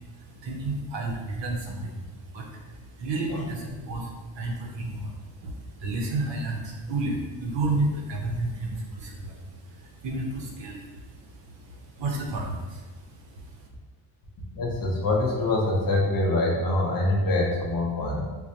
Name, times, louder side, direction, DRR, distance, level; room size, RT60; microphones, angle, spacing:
voice 1, 0.0-13.7, right 2 dB, 60° right, 0 dB, 0.7 m, -32 dB
voice 2, 14.5-18.2, left 2 dB, 45° left, -2 dB, 0.6 m, -24 dB
4.4 x 2.1 x 2.6 m, 1.3 s
cardioid pair, 170°, 50 cm